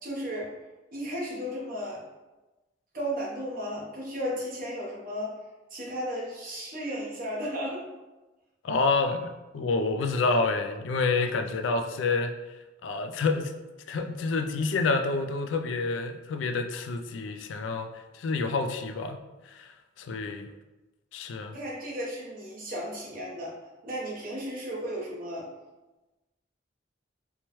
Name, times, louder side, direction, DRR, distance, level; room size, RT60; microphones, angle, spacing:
voice 1, 0.0-0.5 0.9-2.0 2.9-5.3 5.7-7.8 21.5-23.5 23.8-25.5, equal, 45° right, -4 dB, 0.9 m, -34 dB
voice 2, 8.6-12.3 12.8-13.5 13.9-17.9 18.1-19.2 19.5-19.7 20.0-20.5 21.1-21.6, left 3 dB, 75° left, 7 dB, 0.3 m, -28 dB
4.4 x 2.1 x 3.0 m, 1.1 s
head